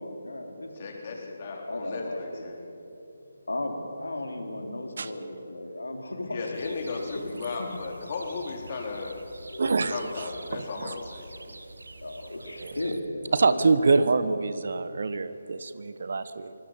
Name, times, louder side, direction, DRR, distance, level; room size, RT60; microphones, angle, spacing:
voice 1, 0.0-2.8 3.5-6.7 7.6-7.7 9.5-10.0 12.0-14.1, left 1 dB, 75° left, 3 dB, 3.6 m, -36 dB
voice 2, 0.7-2.6 6.3-9.1 9.9-11.6, left 4 dB, 40° left, 1 dB, 4.1 m, -35 dB
sound 1, 6.5-13.0, right 2 dB, 75° right, 1.7 m, -47 dB
voice 3, 9.6-10.9 12.6-12.7 13.3-16.5, right 4 dB, 55° right, 13 dB, 1.1 m, -26 dB
25.5 x 20.0 x 7.5 m, 2.8 s
figure-of-eight pair, 150°, 0 cm